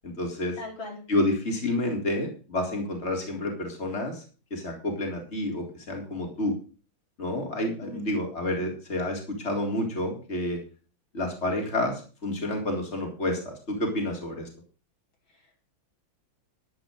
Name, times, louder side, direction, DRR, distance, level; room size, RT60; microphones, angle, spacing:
voice 1, 0.0-0.6 1.1-4.2 4.5-6.5 7.2-10.6 11.1-13.5 13.8-14.5, left 1 dB, 30° left, 1 dB, 4.1 m, -29 dB
voice 2, 0.6-1.0 7.8-8.3 15.3-15.7, left 2 dB, 75° left, 1 dB, 5.1 m, -41 dB
13.5 x 12.0 x 3.9 m, 0.36 s
omnidirectional pair, 2.2 m